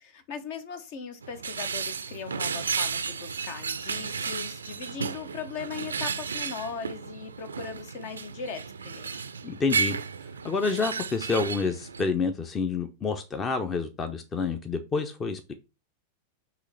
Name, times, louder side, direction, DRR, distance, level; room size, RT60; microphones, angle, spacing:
voice 1, 0.0-9.1, left 6 dB, 50° left, 1.1 m, -39 dB
sound 1, 1.2-12.1, right 5 dB, 70° right, 0.5 m, -33 dB
voice 2, 9.4-10.0 10.4-15.6, left 4 dB, 20° left, 0.8 m, -28 dB
6.1 x 3.1 x 5.7 m
figure-of-eight pair, 90°, 0 cm